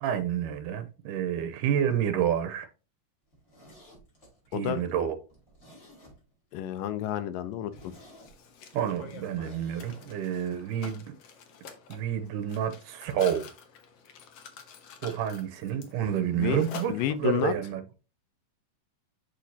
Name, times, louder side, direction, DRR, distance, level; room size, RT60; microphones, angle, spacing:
voice 1, 0.0-2.7 4.5-5.2 8.7-11.1 11.9-13.4 15.0-16.9 17.2-17.8, right 9 dB, 80° right, 2.3 m, -29 dB
Zipper (clothing), 3.3-6.5 6.9-7.0 7.3-7.4 7.7-10.1 10.3-10.4, equal, 20° left, 3.4 m, -54 dB
voice 2, 4.5-4.8 6.5-7.9 16.4-16.6 16.9-17.5, left 11 dB, 85° left, 2.3 m, -30 dB
Mechanisms, 7.7-17.5, left 6 dB, 60° left, 1.6 m, -48 dB
6.4 x 6.3 x 2.8 m
omnidirectional pair, 3.8 m